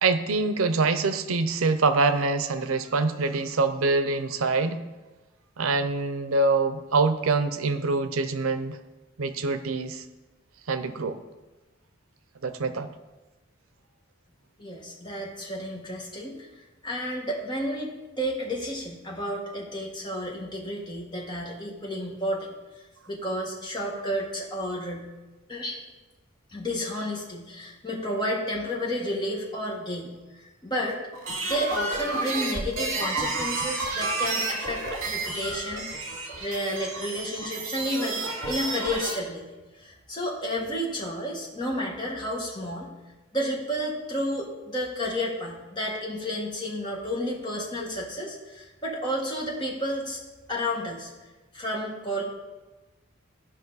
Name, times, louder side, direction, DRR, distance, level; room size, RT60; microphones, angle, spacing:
voice 1, 0.0-4.8 5.6-8.8 9.2-10.0 10.7-11.2 12.4-12.9, right 3 dB, 90° right, 10 dB, 0.6 m, -25 dB
voice 2, 14.6-22.5 23.1-25.1 25.5-25.8 26.5-31.0 31.4-36.1 36.4-39.4 39.7-42.9 43.3-50.2 50.5-51.1 51.5-52.2, equal, 20° left, -2 dB, 1.6 m, -31 dB
sound 1, 31.1-39.1, right 3 dB, 70° right, 2.3 m, -31 dB
14.0 x 5.3 x 4.0 m, 1.1 s
head